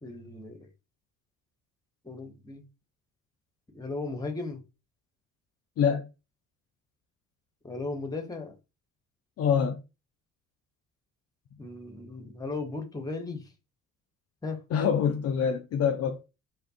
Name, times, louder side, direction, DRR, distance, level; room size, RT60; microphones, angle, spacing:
voice 1, 0.0-0.7 2.0-2.6 3.7-4.6 7.6-8.6 11.6-13.4 14.4-14.6, left 3 dB, 10° left, 0.7 m, -36 dB
voice 2, 5.8-6.1 9.4-9.8 14.7-16.3, left 7 dB, 40° left, 0.4 m, -25 dB
2.7 x 2.4 x 2.4 m
hypercardioid pair, 50°, 40 cm